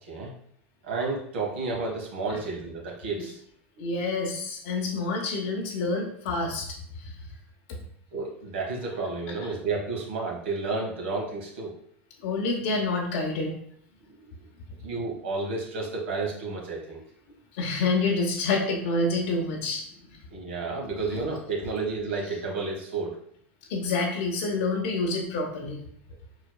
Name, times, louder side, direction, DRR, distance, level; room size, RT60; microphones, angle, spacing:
voice 1, 0.0-0.3 0.8-3.4 3.8-3.9 8.1-11.7 14.1-14.4 14.8-17.0 20.3-23.2, right 3 dB, 70° right, -1 dB, 1.3 m, -31 dB
voice 2, 3.8-6.7 7.0-7.1 12.2-13.5 17.6-19.8 23.7-25.8, left 3 dB, 65° left, -1 dB, 0.8 m, -27 dB
4.9 x 3.9 x 2.3 m, 0.64 s
hypercardioid pair, 85°, 7 cm